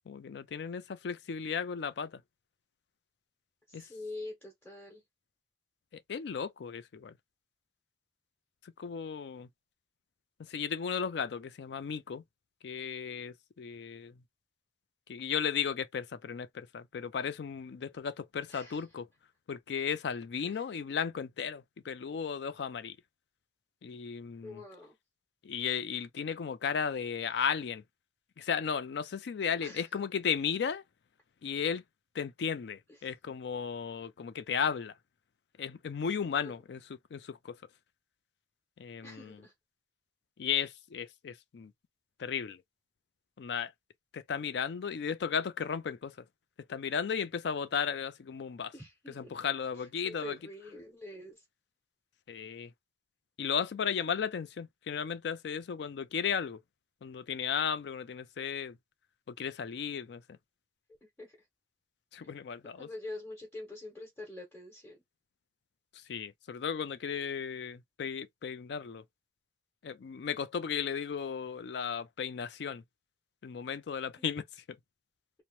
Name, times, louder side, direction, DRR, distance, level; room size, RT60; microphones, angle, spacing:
voice 1, 0.1-2.2 3.7-3.8 5.9-7.1 8.8-9.5 10.5-12.2 12.6-14.1 15.1-19.1 19.5-23.0 23.8-24.6 25.4-27.8 28.4-30.8 31.4-31.8 32.2-34.9 35.6-36.8 37.1-37.6 38.8-39.4 40.4-41.7 42.2-42.6 43.4-43.7 44.1-46.1 46.7-48.7 49.1-50.4 52.3-52.7 53.4-56.6 57.0-58.8 59.3-60.2 62.1-62.9 66.1-69.0 69.8-72.8 73.4-74.4, left 7 dB, 70° left, 0.4 m, -35 dB
voice 2, 3.7-5.0 18.5-18.8 20.5-20.6 24.4-24.9 29.6-29.9 32.9-33.1 36.2-36.7 39.0-39.5 48.7-49.3 49.7-51.4 61.2-61.3 62.8-65.0 74.2-74.3, left 2 dB, 10° left, 0.8 m, -45 dB
2.8 x 2.0 x 3.0 m
head